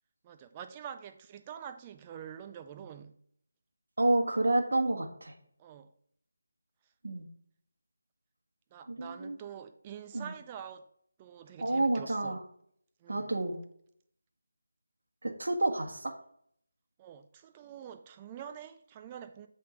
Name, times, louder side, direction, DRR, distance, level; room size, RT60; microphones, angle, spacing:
voice 1, 0.2-3.2 5.6-5.9 8.7-10.9 11.2-12.4 13.0-13.3 17.0-19.5, right 8 dB, 20° right, 0.5 m, -46 dB
voice 2, 4.0-5.3 7.0-7.3 8.9-9.4 10.1-10.3 11.6-12.4 13.1-13.6 15.2-16.1, right 2 dB, 70° right, 1.4 m, -29 dB
7.7 x 3.6 x 5.0 m
figure-of-eight pair, 165°, 0 cm